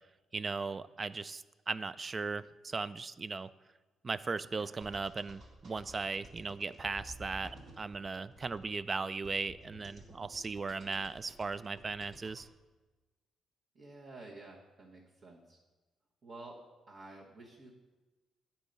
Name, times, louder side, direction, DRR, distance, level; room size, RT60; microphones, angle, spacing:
voice 1, 0.3-3.5 4.0-12.5, right 4 dB, 35° right, 16 dB, 0.3 m, -37 dB
sound 1, 4.8-12.5, equal, 65° right, 1.8 m, -54 dB
voice 2, 13.7-15.6 16.2-17.7, right 2 dB, 50° right, -5 dB, 1.3 m, -51 dB
9.9 x 4.5 x 5.3 m, 1.2 s
cardioid pair, 90°, 0 cm